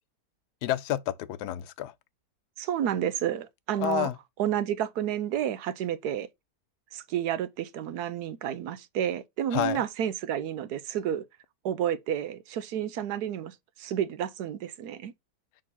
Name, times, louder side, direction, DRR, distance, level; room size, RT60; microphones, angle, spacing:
voice 1, 0.6-1.9 3.8-4.2 9.5-9.8, left 13 dB, 75° left, 1.1 m, -29 dB
voice 2, 2.6-4.1 4.4-6.3 6.9-11.2 11.6-15.1, right 10 dB, 75° right, 1.1 m, -30 dB
6.3 x 3.7 x 4.1 m
omnidirectional pair, 1.8 m